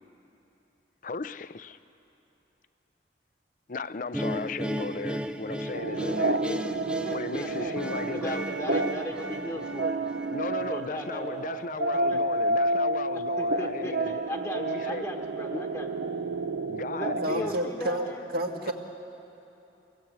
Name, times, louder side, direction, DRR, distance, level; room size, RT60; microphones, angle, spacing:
voice 1, 1.0-1.8 3.7-6.6 7.1-8.8 10.3-14.2 14.5-15.1 15.5-15.6 16.6-17.5 18.7-18.8, left 4 dB, 45° left, 0.5 m, -36 dB
sound 1, 4.1-11.2, equal, 5° right, 0.4 m, -36 dB
sound 2, 5.7-17.5, right 2 dB, 75° right, 0.6 m, -30 dB
voice 2, 7.0-7.7 8.1-10.0 10.5-11.8 12.1-12.4 13.1-15.9 16.9-18.2, left 1 dB, 10° left, 1.1 m, -38 dB
voice 3, 17.2-18.1 18.3-18.7, right 1 dB, 55° right, 1.9 m, -29 dB
24.5 x 16.5 x 8.3 m
head